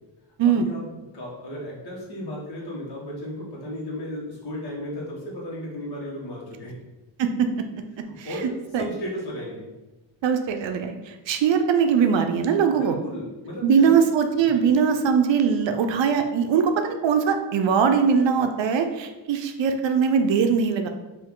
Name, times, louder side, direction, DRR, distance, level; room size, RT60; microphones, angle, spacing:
voice 1, 0.4-6.7 8.2-9.7 12.7-14.0 14.5-14.7, equal, 55° left, -5 dB, 1.4 m, -35 dB
voice 2, 10.2-11.0 11.3-12.9 13.6-20.9, right 6 dB, 75° right, 6 dB, 0.5 m, -21 dB
4.5 x 2.6 x 3.7 m, 1.1 s
wide cardioid pair, 160°, 45 cm